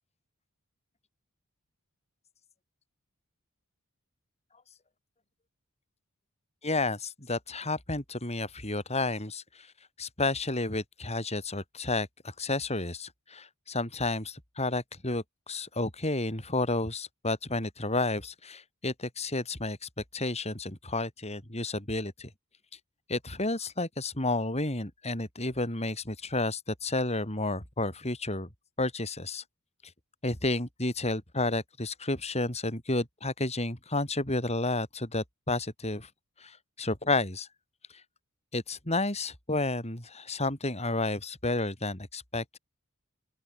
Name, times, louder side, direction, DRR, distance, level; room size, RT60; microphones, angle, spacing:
voice 1, 6.6-9.7 10.0-22.3 23.1-28.5 28.8-29.4 30.2-36.1 36.4-37.5 38.5-42.6, left 2 dB, 30° left, 6.5 m, -31 dB
open air
head